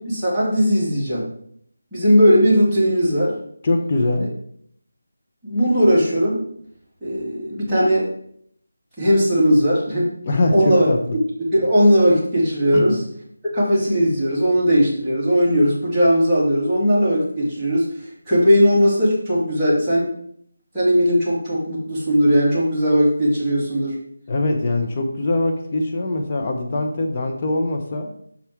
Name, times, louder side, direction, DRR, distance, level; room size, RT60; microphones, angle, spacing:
voice 1, 0.1-1.2 1.9-3.4 4.2-4.3 5.4-6.4 7.0-8.1 9.0-10.1 10.5-10.9 11.5-13.0 13.4-17.9 18.3-20.1 20.7-24.0, equal, 5° right, -14 dB, 2.4 m, -18 dB
voice 2, 3.6-4.3 10.3-11.0 12.7-13.0 24.3-28.1, left 2 dB, 30° left, 3 dB, 0.8 m, -22 dB
5.9 x 5.6 x 4.7 m, 0.65 s
figure-of-eight pair, 170°, 0 cm